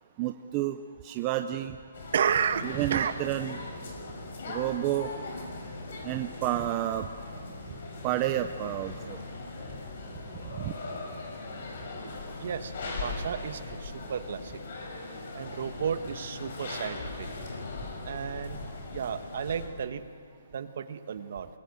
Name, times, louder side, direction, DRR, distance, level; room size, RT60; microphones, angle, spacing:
voice 1, 0.2-0.8 1.0-1.8 2.8-3.6 4.5-5.1 6.0-7.1 8.0-9.2 10.6-10.7, right 14 dB, 20° right, 8 dB, 0.6 m, -30 dB
sound 1, 1.9-19.7, left 3 dB, 45° left, 5.7 m, -39 dB
voice 2, 2.1-3.1 12.4-12.7 13.0-14.5 15.3-17.3 18.0-18.6 18.9-20.0 20.5-21.5, right 7 dB, 45° right, 10 dB, 1.3 m, -32 dB
26.0 x 21.5 x 8.1 m, 2.1 s
hypercardioid pair, 170°, 0 cm